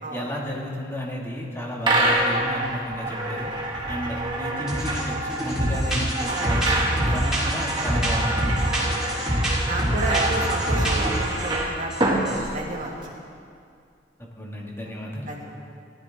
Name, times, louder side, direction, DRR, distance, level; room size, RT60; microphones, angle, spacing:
voice 1, 0.1-3.5 3.9-6.6 7.0-8.6 14.4-15.3, equal, 15° left, -2 dB, 2.0 m, -32 dB
sound 1, 1.8-13.1, right 2 dB, 25° right, 2.0 m, -27 dB
sound 2, 4.7-5.0 5.3-11.5 11.9-12.5, equal, 5° right, 3.6 m, -25 dB
voice 2, 9.4-12.2 12.5-13.0 15.3-15.6, right 2 dB, 45° right, -2 dB, 2.0 m, -31 dB
18.0 x 12.5 x 3.6 m, 2.3 s
head